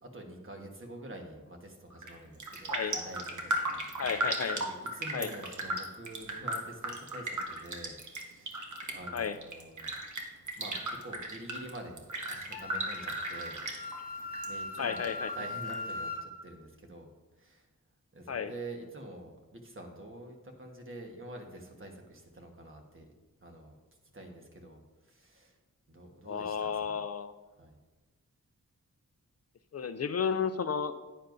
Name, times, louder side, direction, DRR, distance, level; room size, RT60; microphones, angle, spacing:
voice 1, 0.0-3.8 4.5-9.9 10.6-13.6 14.1-17.1 17.4-17.7 18.1-23.1 23.4-23.8 24.1-25.6 25.9-27.0 27.6-27.8, right 1 dB, 40° right, 3 dB, 1.3 m, -47 dB
Raindrop, 1.9-2.1 2.4-14.5 14.7-15.7 16.1-16.2, right 1 dB, 60° right, 1.2 m, -36 dB
voice 2, 4.0-4.6 5.1-5.3 9.1-9.4 14.8-15.3 18.3-18.5 26.3-27.3 29.7-30.9, left 6 dB, 50° left, 11 dB, 0.4 m, -32 dB
Wind instrument woodwind instrument, 12.5-16.3, left 2 dB, 25° left, 1.2 m, -39 dB
9.9 x 9.4 x 2.6 m, 1.2 s
wide cardioid pair, 105°, 33 cm